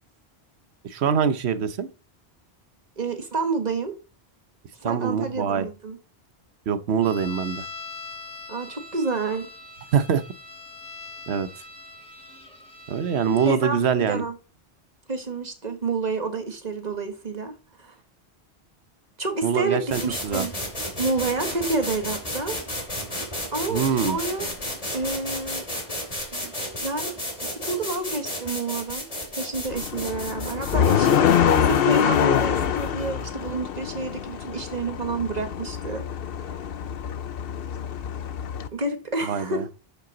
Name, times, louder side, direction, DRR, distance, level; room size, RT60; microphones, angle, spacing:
voice 1, 0.8-1.9 4.8-5.7 6.7-7.6 9.9-10.2 11.3-11.5 12.9-14.2 19.4-20.5 23.7-24.2 39.2-39.6, right 7 dB, 80° right, 1.0 m, -24 dB
voice 2, 3.0-3.9 4.8-6.0 8.5-9.5 13.4-14.3 15.1-17.5 17.8-17.9 19.2-20.5 21.0-22.6 23.5-24.5 24.9-25.6 26.3-29.0 29.3-31.3 31.6-36.0 38.7-39.6, right 3 dB, 40° right, 1.6 m, -29 dB
sound 1, 7.0-13.6, left 3 dB, 5° left, 1.5 m, -42 dB
sound 2, 19.9-33.6, left 1 dB, 35° left, 2.7 m, -33 dB
sound 3, 29.7-38.7, left 8 dB, 65° left, 0.9 m, -24 dB
12.0 x 5.8 x 3.9 m
omnidirectional pair, 1.1 m